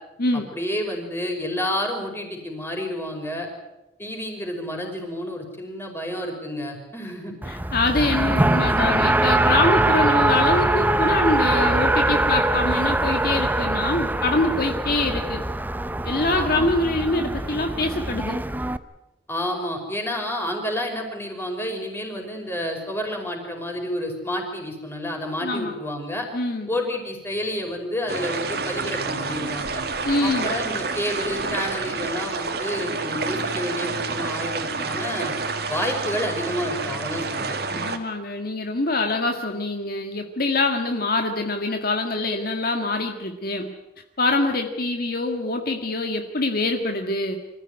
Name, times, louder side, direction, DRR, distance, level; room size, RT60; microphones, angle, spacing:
voice 1, 0.5-3.5 4.0-7.3 16.3-16.7 19.3-26.3 26.7-29.8 30.2-35.4 35.7-37.9, left 1 dB, 15° left, 2 dB, 5.4 m, -29 dB
Race car auto racing, 7.4-18.8, right 1 dB, 10° right, 0.7 m, -22 dB
voice 2, 7.5-15.4 16.0-18.4 25.4-25.8 26.3-26.7 30.0-30.6 37.8-43.7 44.2-47.4, left 2 dB, 60° left, 4 dB, 1.8 m, -24 dB
sound 1, 28.1-38.0, right 4 dB, 65° right, 2.3 m, -29 dB
25.5 x 15.0 x 9.7 m, 0.97 s
head